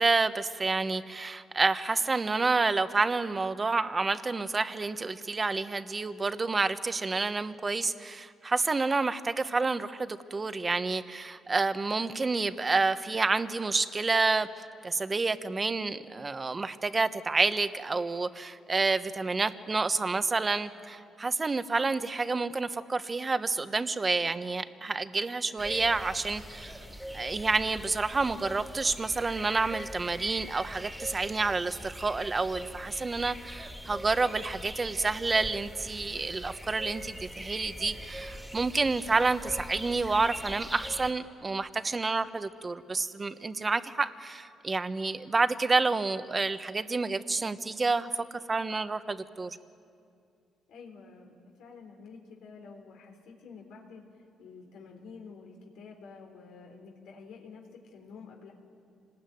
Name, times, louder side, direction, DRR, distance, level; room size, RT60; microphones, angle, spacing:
voice 1, 0.0-14.5 14.8-26.8 27.1-49.6, right 3 dB, 30° right, 11 dB, 1.1 m, -29 dB
sound 1, 25.6-41.1, equal, 5° right, 2.1 m, -42 dB
voice 2, 50.7-54.0 54.4-58.5, left 5 dB, 85° left, 1 dB, 3.5 m, -49 dB
26.5 x 19.5 x 9.3 m, 2.4 s
cardioid pair, 90°, 0 cm